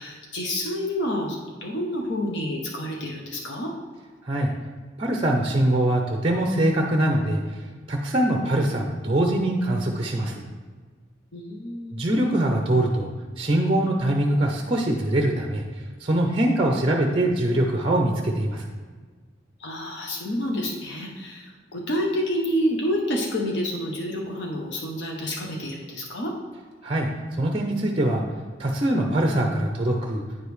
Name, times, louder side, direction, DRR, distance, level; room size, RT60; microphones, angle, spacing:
voice 1, 0.0-3.7 11.3-12.1 19.6-26.3, equal, 70° left, 0 dB, 0.8 m, -28 dB
voice 2, 5.0-7.4 7.9-10.5 11.9-13.1 13.4-15.6 16.0-18.6 26.8-28.2 28.6-30.2, right 1 dB, 30° right, 2 dB, 0.6 m, -23 dB
9.6 x 5.1 x 3.2 m, 1.5 s
head